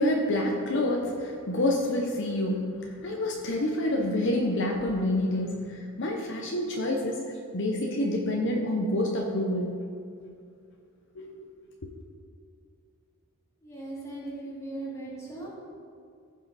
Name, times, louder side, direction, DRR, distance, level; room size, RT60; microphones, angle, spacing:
voice 1, 0.0-7.2 7.5-9.7 11.1-11.5, left 1 dB, 55° left, 1 dB, 0.9 m, -28 dB
voice 2, 13.6-15.5, right 2 dB, 15° left, -7 dB, 2.5 m, -38 dB
15.0 x 5.8 x 4.1 m, 2.4 s
head